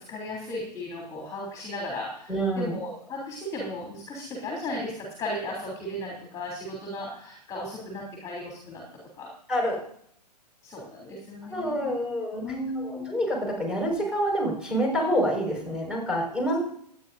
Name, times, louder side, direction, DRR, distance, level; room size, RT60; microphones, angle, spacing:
voice 1, 0.0-8.8 9.2-9.3 10.6-13.1, left 1 dB, 15° left, -2 dB, 3.2 m, -36 dB
voice 2, 2.3-2.7 9.5-9.8 11.5-12.4 12.8-16.6, equal, 5° right, -1 dB, 5.3 m, -27 dB
25.0 x 9.6 x 2.7 m, 0.66 s
figure-of-eight pair, 115°, 21 cm